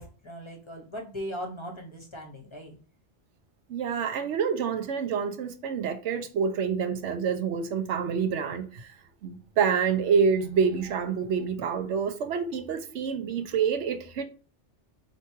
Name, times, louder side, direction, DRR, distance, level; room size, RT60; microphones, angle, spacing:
voice 1, 0.0-2.8, equal, 30° left, 0.7 m, -39 dB
voice 2, 3.7-8.9 9.2-14.2, right 6 dB, 85° right, 1.0 m, -27 dB
4.4 x 2.8 x 3.0 m
omnidirectional pair, 1.2 m